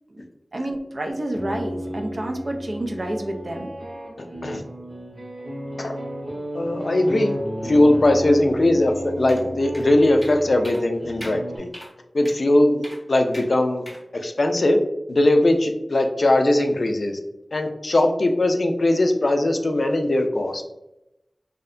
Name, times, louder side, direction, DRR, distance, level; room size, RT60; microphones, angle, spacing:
voice 1, 0.5-3.7, right 1 dB, 60° right, 2 dB, 0.4 m, -29 dB
sound 1, 1.1-11.6, equal, 75° right, 0.7 m, -33 dB
voice 2, 4.2-4.6 5.8-6.0 6.5-7.3 7.6-11.7 12.1-12.8 13.1-13.8 14.1-14.8 15.1-17.2 17.5-20.6, left 1 dB, 65° left, 4 dB, 0.3 m, -20 dB
sound 2, 9.3-9.4 9.7-9.9 10.2-10.4 10.6-10.8 11.2-11.4 11.7-11.9 12.2-12.4 12.8-13.0 13.3-13.5 13.9-14.0, equal, 5° left, 0.6 m, -40 dB
2.7 x 2.1 x 2.4 m, 0.92 s
wide cardioid pair, 55°, 0 cm